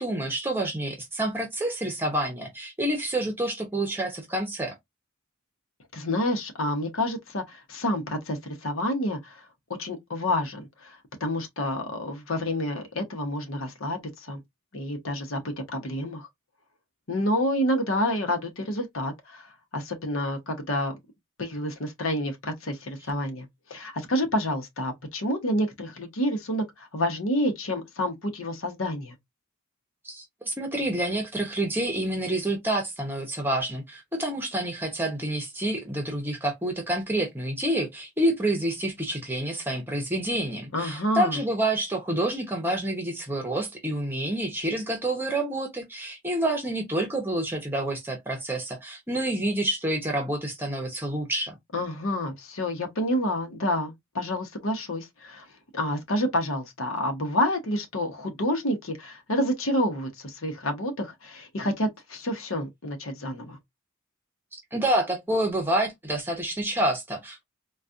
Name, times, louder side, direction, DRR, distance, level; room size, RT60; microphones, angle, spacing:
voice 1, 0.0-4.7 30.0-51.6 64.5-67.4, right 1 dB, 10° right, 0.8 m, -28 dB
voice 2, 5.9-9.4 9.8-14.4 14.7-16.3 17.1-20.9 21.4-29.1 40.7-41.4 51.7-55.4 55.7-63.6, left 1 dB, 75° left, 0.9 m, -29 dB
4.0 x 2.3 x 2.4 m
head